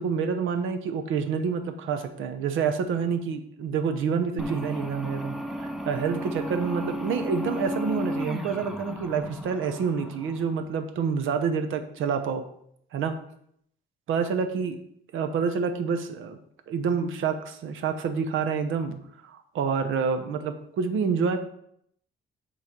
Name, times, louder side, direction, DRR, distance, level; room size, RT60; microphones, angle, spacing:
voice 1, 0.0-12.4 12.9-13.2 14.1-14.8 15.1-16.4 16.7-19.0 19.2-21.4, right 6 dB, 80° right, 7 dB, 0.9 m, -28 dB
sound 1, 4.4-10.8, equal, ahead, 0.5 m, -34 dB
8.2 x 3.3 x 5.8 m, 0.70 s
cardioid pair, 165°, 20 cm